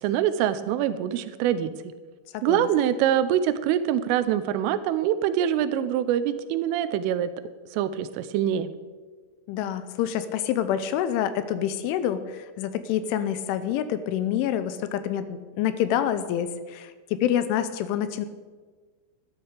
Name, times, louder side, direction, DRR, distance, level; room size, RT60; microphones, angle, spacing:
voice 1, 0.0-1.7 2.4-7.3 7.7-8.7, right 10 dB, 85° right, 13 dB, 3.2 m, -24 dB
voice 2, 2.3-2.7 9.5-18.3, left 10 dB, 80° left, 12 dB, 3.1 m, -27 dB
13.0 x 10.5 x 6.7 m, 1.4 s
omnidirectional pair, 5.7 m